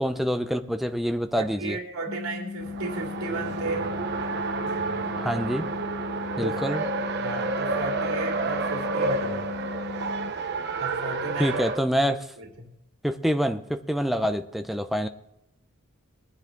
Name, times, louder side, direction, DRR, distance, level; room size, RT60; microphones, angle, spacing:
voice 1, 0.0-1.8 5.2-5.7 6.4-6.8 11.4-12.2 13.0-15.1, equal, ahead, 7 dB, 0.6 m, -26 dB
voice 2, 1.3-3.9 6.4-6.9 7.2-9.5 10.8-11.6 12.4-12.7, right 2 dB, 85° right, 0 dB, 2.9 m, -34 dB
sound 1, 2.1-10.3, left 5 dB, 20° left, 1.9 m, -37 dB
Race car auto racing, 2.6-11.8, right 4 dB, 50° right, 0.9 m, -30 dB
21.5 x 9.7 x 3.8 m, 0.87 s
head